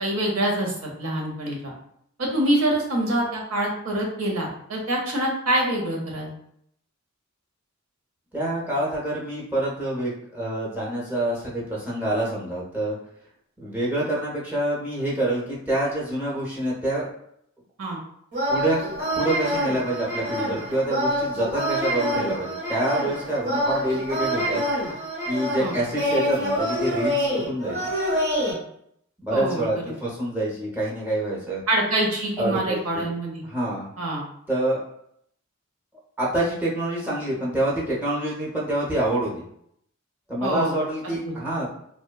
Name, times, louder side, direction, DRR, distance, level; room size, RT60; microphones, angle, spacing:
voice 1, 0.0-1.7 2.2-6.3 17.8-18.0 25.6-25.8 29.3-29.7 31.7-33.4 34.0-34.2 40.4-40.7 41.2-41.3, right 1 dB, 85° right, -1 dB, 0.8 m, -25 dB
voice 2, 8.3-13.0 13.6-17.1 18.5-24.6 25.3-27.9 29.2-31.6 32.4-33.1 33.4-33.9 34.5-34.8 36.2-39.4 40.3-41.7, right 1 dB, 10° right, -6 dB, 0.7 m, -27 dB
sound 1, 18.3-28.5, equal, 60° right, 1.1 m, -26 dB
2.9 x 2.1 x 2.2 m, 0.71 s
head